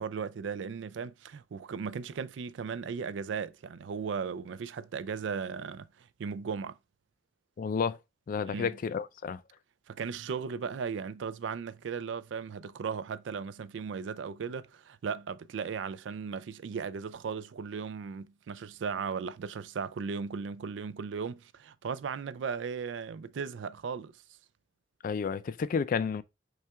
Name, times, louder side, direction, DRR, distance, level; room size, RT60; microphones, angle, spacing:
voice 1, 0.0-6.8 8.5-8.8 9.9-24.2, right 6 dB, 75° right, 0.4 m, -36 dB
voice 2, 7.6-8.0 8.3-9.4 25.0-26.2, left 6 dB, 50° left, 0.3 m, -31 dB
5.6 x 2.4 x 3.3 m
head